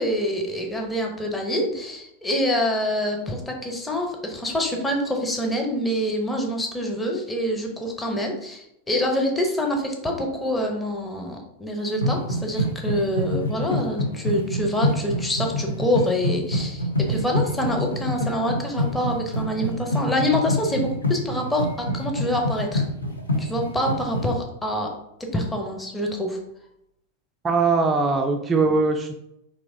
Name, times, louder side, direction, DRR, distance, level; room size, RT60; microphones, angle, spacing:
voice 1, 0.0-22.8 23.4-24.9 25.3-26.4, equal, 10° left, 1 dB, 0.8 m, -26 dB
sound 1, 11.9-24.3, equal, 80° left, 0.7 m, -26 dB
voice 2, 27.4-29.1, right 4 dB, 20° right, 4 dB, 0.4 m, -21 dB
4.6 x 3.0 x 2.7 m, 0.81 s
figure-of-eight pair, 90°, 0 cm